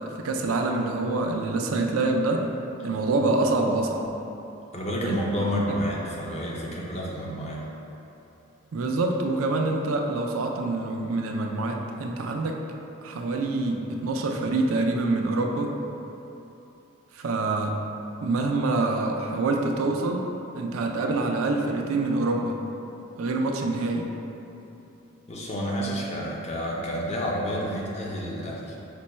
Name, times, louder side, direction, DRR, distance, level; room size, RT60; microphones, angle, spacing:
voice 1, 0.0-2.5 2.8-4.1 5.0-5.2 8.7-12.6 13.0-15.7 17.1-17.8 18.2-20.3 20.5-22.6 23.2-24.1, right 2 dB, 90° right, 2 dB, 0.4 m, -26 dB
voice 2, 4.7-7.6 24.4-24.5 25.3-28.8, equal, 30° left, -3 dB, 0.6 m, -29 dB
5.2 x 2.2 x 4.2 m, 3.0 s
head